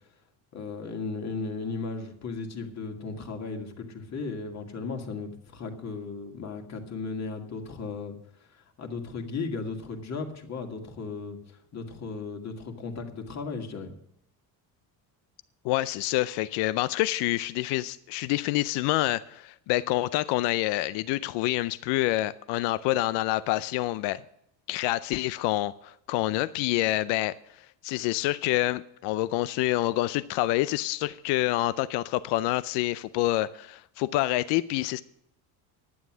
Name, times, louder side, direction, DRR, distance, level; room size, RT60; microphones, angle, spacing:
voice 1, 0.5-8.2 8.5-11.4 11.7-13.9, left 4 dB, 40° left, 2.2 m, -36 dB
voice 2, 15.6-24.2 24.7-35.0, left 16 dB, 80° left, 0.6 m, -27 dB
11.0 x 9.5 x 6.1 m
cardioid pair, 115°, 41 cm